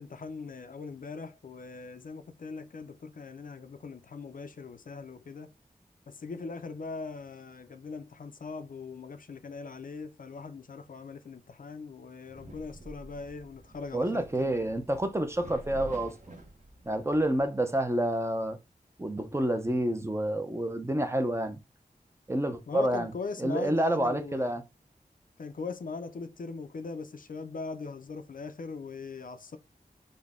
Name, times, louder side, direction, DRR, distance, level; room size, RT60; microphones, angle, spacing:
voice 1, 0.0-5.5 6.1-14.7 22.7-24.6 25.4-29.6, left 4 dB, 65° left, 0.4 m, -40 dB
sound 1, 12.3-17.4, right 1 dB, 55° right, 1.0 m, -48 dB
voice 2, 13.9-16.2 16.8-18.6 19.0-21.6 22.3-23.1 23.4-24.6, right 1 dB, 15° right, 0.6 m, -28 dB
3.9 x 2.1 x 3.5 m
wide cardioid pair, 65°, 16 cm